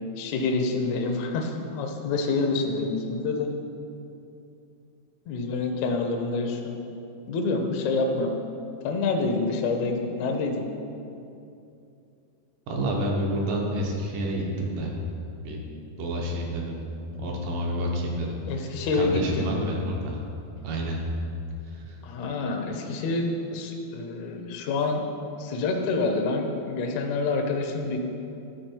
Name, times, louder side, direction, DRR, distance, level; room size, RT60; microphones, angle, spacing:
voice 1, 0.2-3.5 5.3-6.7 7.3-8.4 8.8-10.7 18.5-19.5 22.0-25.1 25.4-28.0, left 3 dB, 80° left, 3 dB, 1.6 m, -27 dB
voice 2, 12.7-14.9 15.4-15.6 16.0-16.8 17.2-20.2 20.6-21.0 21.7-22.0, equal, 70° right, -1 dB, 2.4 m, -29 dB
12.0 x 4.6 x 4.5 m, 2.7 s
omnidirectional pair, 4.2 m